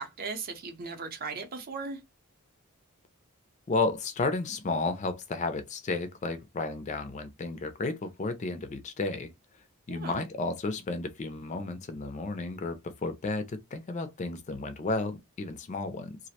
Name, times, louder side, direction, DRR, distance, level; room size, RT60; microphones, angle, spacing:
voice 1, 0.0-2.0 9.9-10.3, right 4 dB, 45° right, 0.6 m, -37 dB
voice 2, 3.7-9.3 9.9-16.2, left 3 dB, 30° left, 0.3 m, -32 dB
2.4 x 2.0 x 2.7 m
head